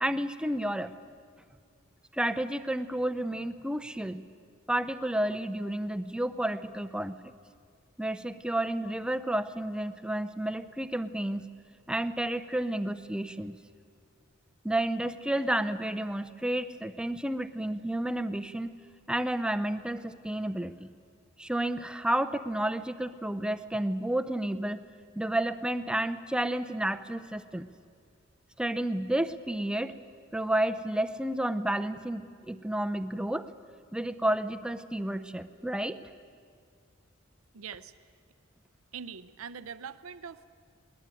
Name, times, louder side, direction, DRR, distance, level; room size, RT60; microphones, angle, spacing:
voice 1, 0.0-0.9 2.1-4.2 4.7-7.2 8.0-11.5 11.9-13.6 14.6-18.8 19.1-20.9 21.4-24.8 25.2-27.7 28.6-30.0 30.3-33.5 33.9-36.0, right 1 dB, 5° right, 9 dB, 0.7 m, -31 dB
voice 2, 37.5-37.9 38.9-40.4, right 6 dB, 85° right, 14 dB, 0.7 m, -42 dB
21.0 x 20.0 x 9.1 m, 2.1 s
head